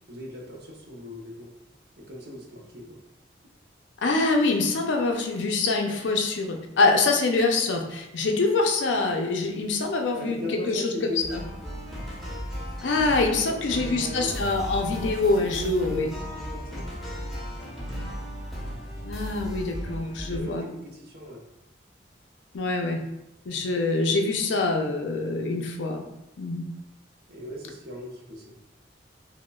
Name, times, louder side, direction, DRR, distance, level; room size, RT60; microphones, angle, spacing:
voice 1, 0.1-1.5 2.0-3.0 10.2-11.4 13.4-14.4 15.0-16.9 20.2-21.4 27.3-28.5, left 1 dB, 60° right, -1 dB, 0.8 m, -38 dB
voice 2, 4.0-10.4 10.7-10.9 11.3-11.4 12.8-16.1 19.0-20.7 22.5-23.0 23.5-26.0 26.4-26.7, left 3 dB, 75° left, 3 dB, 0.5 m, -25 dB
sound 1, 11.2-20.4, equal, ahead, 0.8 m, -36 dB
4.9 x 2.1 x 2.3 m, 0.91 s
head